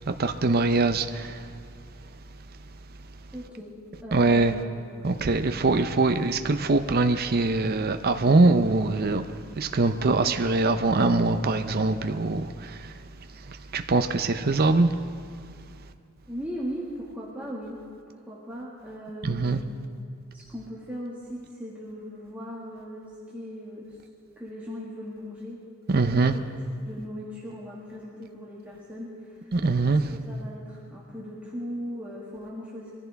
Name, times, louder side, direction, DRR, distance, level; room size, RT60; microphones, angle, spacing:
voice 1, 0.0-1.6 4.1-4.5 5.0-13.0 13.3-15.0 19.2-19.6 25.9-26.4 29.5-30.0, right 3 dB, 45° right, 0.6 m, -23 dB
voice 2, 3.3-3.7 4.0-4.6 5.0-5.2 16.3-17.8 18.1-19.7 20.3-24.0 24.4-25.6 25.9-26.1 26.3-26.4 26.8-29.5 29.8-30.0 30.3-32.9, equal, 10° right, 1.9 m, -38 dB
23.5 x 15.0 x 3.5 m
head